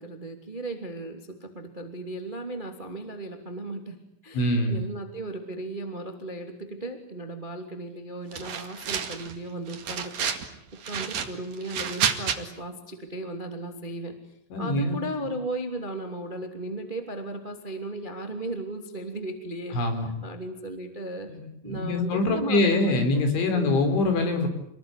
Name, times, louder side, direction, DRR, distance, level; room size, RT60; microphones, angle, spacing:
voice 1, 0.0-4.0 4.2-10.6 10.8-14.1 14.6-19.8 20.2-21.3 21.6-23.7, right 1 dB, 15° right, 6 dB, 2.0 m, -36 dB
voice 2, 4.3-4.8 14.5-15.0 19.7-20.1 21.3-21.4 21.7-24.5, left 2 dB, 65° left, 7 dB, 6.6 m, -24 dB
sound 1, 8.3-9.3 9.7-10.5 10.8-12.4, right 7 dB, 50° right, 2.6 m, -30 dB
28.5 x 21.0 x 10.0 m, 0.74 s
omnidirectional pair, 5.8 m